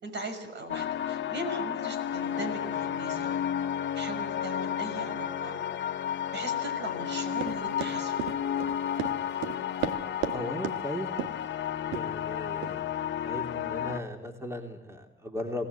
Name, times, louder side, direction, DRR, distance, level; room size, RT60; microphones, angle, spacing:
voice 1, 0.0-3.4 3.9-5.9 6.3-8.3, right 2 dB, 60° right, 7 dB, 6.1 m, -39 dB
sound 1, 0.7-14.0, left 9 dB, 65° left, 1.3 m, -32 dB
Run, 7.4-10.4 10.6-10.8 11.2-11.4 11.9-12.1 12.6-12.7, right 8 dB, 90° right, 1.8 m, -33 dB
voice 2, 10.3-11.1 11.9-12.8 13.2-15.7, left 1 dB, 15° right, 3 dB, 3.0 m, -37 dB
27.0 x 18.0 x 8.3 m, 1.0 s
cardioid pair, 90°, 20 cm